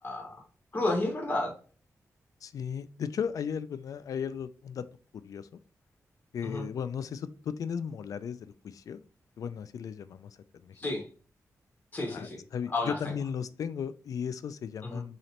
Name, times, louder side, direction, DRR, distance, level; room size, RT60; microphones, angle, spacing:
voice 1, 0.0-0.4 0.7-1.5 6.4-6.6 10.8-11.0 11.9-12.4 12.7-13.0 14.8-15.0, left 2 dB, 30° left, 1 dB, 1.6 m, -31 dB
voice 2, 2.4-4.8 5.1-5.5 6.3-9.0 9.4-10.8 12.1-15.2, left 7 dB, 75° left, 13 dB, 0.4 m, -36 dB
3.8 x 3.2 x 2.9 m, 0.39 s
wide cardioid pair, 115°, 6 cm